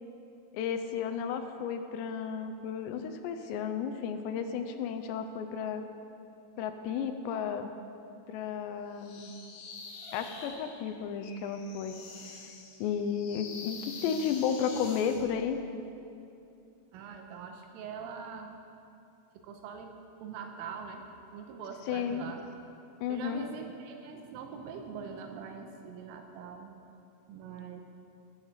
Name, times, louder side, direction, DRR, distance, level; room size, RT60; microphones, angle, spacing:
voice 1, 0.5-5.8 6.6-7.7 8.3-9.3 10.1-12.0 12.3-12.5 12.8-15.6 21.9-22.3 23.0-23.4, left 7 dB, 80° left, 7 dB, 2.6 m, -33 dB
sound 1, 9.0-15.3, left 4 dB, 60° left, 2.8 m, -46 dB
voice 2, 16.9-18.5 19.4-22.4 23.1-26.7 27.3-27.8, right 6 dB, 85° right, 4 dB, 3.4 m, -43 dB
18.0 x 9.0 x 6.5 m, 2.7 s
omnidirectional pair, 5.8 m